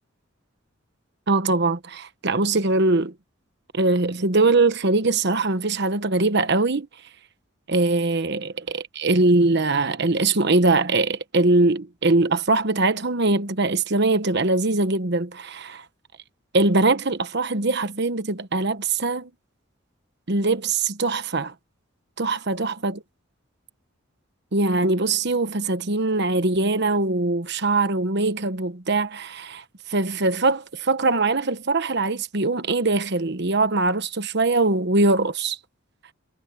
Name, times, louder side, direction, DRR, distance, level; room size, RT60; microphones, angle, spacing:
voice 1, 1.3-3.1 3.7-6.9 7.7-15.8 16.5-19.3 20.3-21.5 22.2-23.0 24.5-35.6, right 3 dB, 55° right, 1.2 m, -22 dB
head